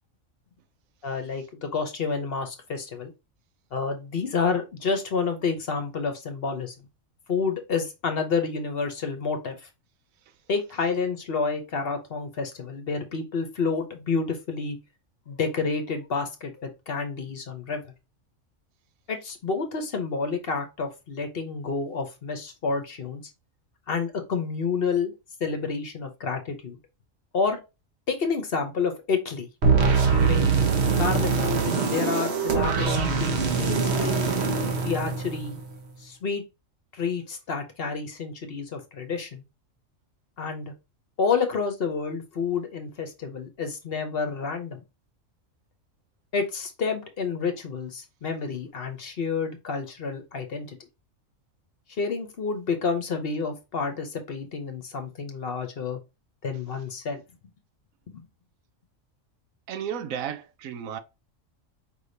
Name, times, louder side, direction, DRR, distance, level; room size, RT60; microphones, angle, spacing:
voice 1, 1.0-3.1 3.7-6.7 7.3-9.7 10.5-14.8 15.3-17.8 19.1-23.2 23.9-25.1 25.4-26.8 27.3-27.6 28.1-29.5 30.0-30.5 31.0-31.6 31.9-34.1 34.8-35.6 36.0-36.4 36.9-39.4 40.4-40.7 41.2-44.8 46.3-50.8 51.9-56.0 56.4-57.2 58.1-58.3, left 5 dB, 55° left, 0.9 m, -29 dB
sound 1, 29.6-35.8, right 5 dB, 55° right, 1.1 m, -23 dB
voice 2, 59.7-61.0, right 8 dB, 85° right, 1.1 m, -33 dB
5.0 x 3.4 x 2.6 m
omnidirectional pair, 1.4 m